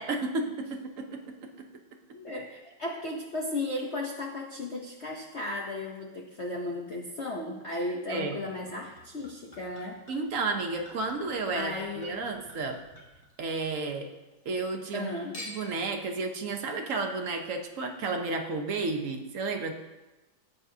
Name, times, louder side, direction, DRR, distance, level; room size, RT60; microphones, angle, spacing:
voice 1, 0.0-1.7 8.1-8.4 10.1-12.8 13.4-14.1 14.4-15.1 15.5-19.7, right 3 dB, 60° right, 3 dB, 0.8 m, -32 dB
voice 2, 2.1-10.0 11.5-12.2 14.9-15.5, left 2 dB, 65° left, -1 dB, 0.6 m, -35 dB
Chink clink / Liquid, 8.5-14.0 14.3-15.0 15.3-15.9 16.6-16.7, left 1 dB, 35° left, 2.1 m, -49 dB
13.0 x 8.4 x 2.8 m, 1.1 s
omnidirectional pair, 2.4 m